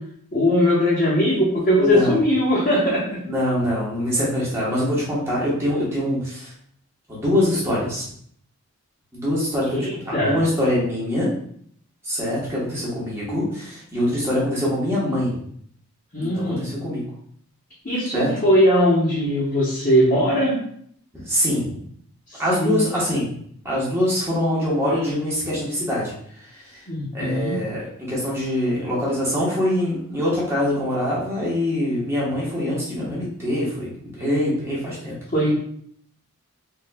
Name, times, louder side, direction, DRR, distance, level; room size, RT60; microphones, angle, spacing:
voice 1, 0.3-3.2 9.8-10.3 16.1-16.7 17.8-20.6 22.3-22.8 26.9-27.6 35.3-35.6, equal, 40° left, -9 dB, 0.9 m, -20 dB
voice 2, 1.8-2.2 3.2-6.5 7.1-8.0 9.1-9.8 10.2-11.3 12.0-15.4 16.2-17.0 18.1-18.3 21.1-21.8 22.4-23.3 23.6-26.8 27.1-35.2, left 1 dB, 10° right, -7 dB, 1.0 m, -24 dB
3.5 x 3.0 x 2.2 m, 0.64 s
head